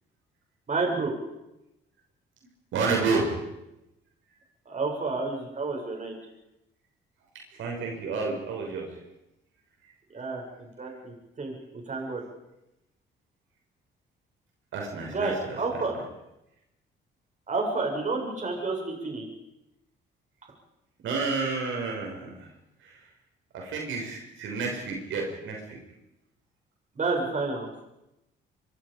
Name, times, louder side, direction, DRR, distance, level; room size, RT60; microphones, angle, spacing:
voice 1, 0.7-1.1 4.7-6.1 10.1-11.5 11.9-12.2 15.0-16.0 17.5-19.2 26.9-27.7, right 3 dB, 40° right, 1 dB, 7.6 m, -30 dB
voice 2, 2.7-3.3 7.6-8.9 14.7-15.3 21.0-22.3 23.5-25.8, right 4 dB, 80° right, 0 dB, 6.6 m, -30 dB
25.5 x 25.0 x 5.4 m, 0.91 s
cardioid pair, 90°, 20 cm